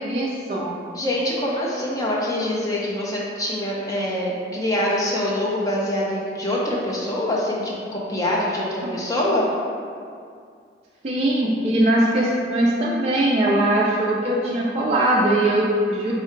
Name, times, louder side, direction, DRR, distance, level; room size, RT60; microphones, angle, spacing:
voice 1, 0.0-0.7 8.8-9.0 11.0-16.1, right 1 dB, 35° right, -5 dB, 0.3 m, -21 dB
voice 2, 0.9-9.4, left 1 dB, 20° left, -4 dB, 0.6 m, -24 dB
3.6 x 2.3 x 4.4 m, 2.2 s
head